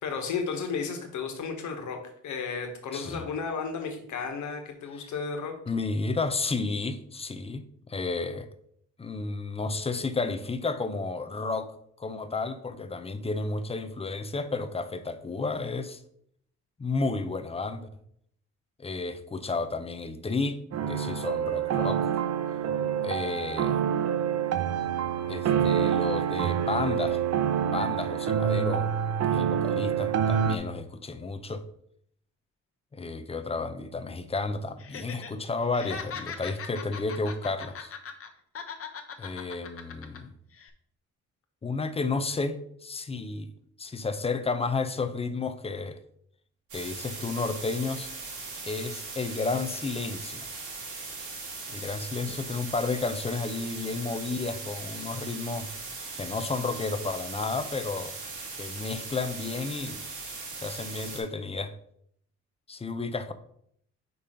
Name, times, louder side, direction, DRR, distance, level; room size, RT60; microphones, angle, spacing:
voice 1, 0.0-5.5, left 5 dB, 75° left, 1.4 m, -33 dB
voice 2, 2.9-3.2 5.0-5.1 5.7-8.5 9.0-16.0 16.8-17.9 18.8-20.6 20.9-22.1 23.0-23.8 25.3-27.2 27.7-28.9 29.3-31.7 32.9-37.9 39.2-40.3 41.6-43.5 43.8-46.0 46.7-48.1 48.7-50.5 51.7-55.7 56.2-58.2 58.6-60.0 60.6-61.7 62.7-63.3, left 3 dB, 20° left, 0.6 m, -32 dB
sound 1, 20.7-30.6, right 8 dB, 55° right, 0.7 m, -27 dB
Laughter, 34.8-35.3 35.6-38.3 38.5-40.2 40.5-40.7, left 6 dB, 45° left, 1.0 m, -39 dB
sound 2, 46.7-61.2, right 3 dB, 75° right, 2.4 m, -39 dB
5.4 x 4.2 x 5.0 m
cardioid pair, 90°, 30 cm